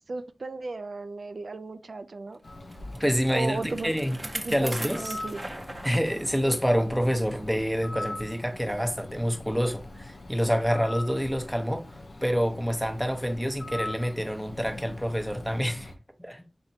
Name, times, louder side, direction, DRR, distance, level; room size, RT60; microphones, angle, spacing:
voice 1, 0.1-2.4 3.3-3.9 4.2-5.4, right 3 dB, 85° right, 0.3 m, -35 dB
Bird, 2.4-16.0, left 1 dB, 85° left, 0.9 m, -42 dB
Bicycle, 2.7-6.6 7.1-7.2 8.0-8.1, right 1 dB, 30° right, 0.7 m, -39 dB
voice 2, 3.0-4.2 4.5-5.2 5.8-15.9 16.2-16.5, equal, ahead, 0.9 m, -27 dB
4.3 x 3.3 x 2.8 m
wide cardioid pair, 65°, 0 cm